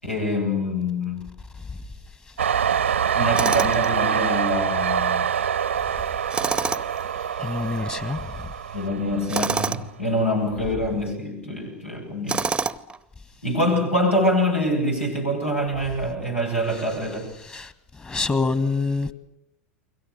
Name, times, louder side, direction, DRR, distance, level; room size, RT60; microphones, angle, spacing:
voice 1, 0.0-1.3 3.1-5.3 8.7-12.5 13.4-17.3, left 1 dB, 90° left, 7.8 m, -25 dB
Train, 2.4-9.8 10.2-11.0, right 8 dB, 75° right, 0.9 m, -25 dB
Tools, 3.4-3.9 6.3-7.0 9.3-9.9 12.3-13.0, right 4 dB, 15° right, 0.9 m, -26 dB
voice 2, 7.4-8.3 17.4-17.7 18.0-19.1, left 4 dB, 20° left, 1.7 m, -26 dB
30.0 x 22.5 x 6.8 m
figure-of-eight pair, 85°, 7 cm